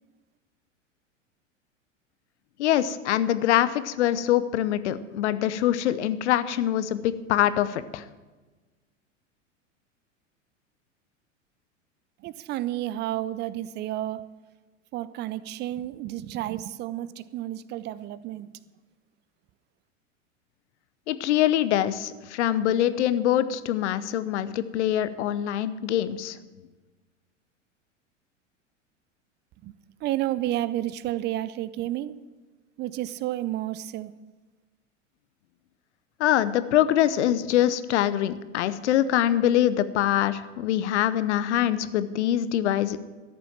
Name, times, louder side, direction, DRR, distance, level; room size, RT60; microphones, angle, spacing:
voice 1, 2.6-8.0 21.1-26.4 36.2-43.0, left 12 dB, 65° left, 14 dB, 0.8 m, -24 dB
voice 2, 12.2-14.3 14.9-18.5 29.6-29.7 30.0-32.2 32.8-34.1, right 14 dB, 30° right, 17 dB, 0.5 m, -31 dB
13.0 x 7.0 x 7.3 m, 1.3 s
figure-of-eight pair, 90°, 38 cm